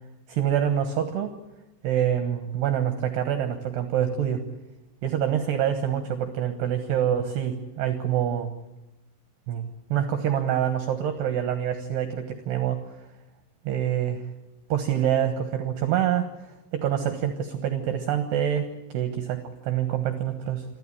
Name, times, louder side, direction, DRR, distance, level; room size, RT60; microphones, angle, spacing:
voice 1, 0.3-1.4 1.8-4.4 5.0-8.5 9.5-12.8 13.7-14.2 14.7-20.7, right 9 dB, 70° right, 7 dB, 3.0 m, -26 dB
28.0 x 12.5 x 9.9 m, 1.0 s
omnidirectional pair, 5.6 m